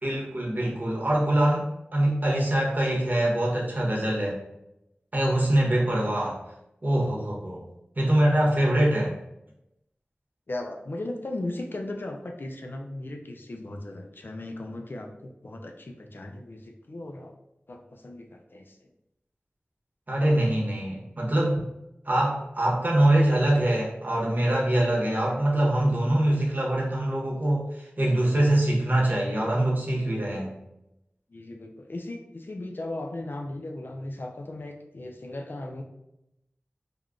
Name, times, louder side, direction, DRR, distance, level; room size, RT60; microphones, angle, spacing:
voice 1, 0.0-4.4 5.1-6.4 6.8-7.6 8.0-9.1 20.1-21.7 22.0-30.6, right 1 dB, 50° right, -4 dB, 0.9 m, -24 dB
voice 2, 10.5-17.3 17.7-18.9 31.3-35.8, left 2 dB, 60° left, 3 dB, 0.4 m, -37 dB
3.5 x 2.2 x 2.4 m, 0.87 s
wide cardioid pair, 45°, 4 cm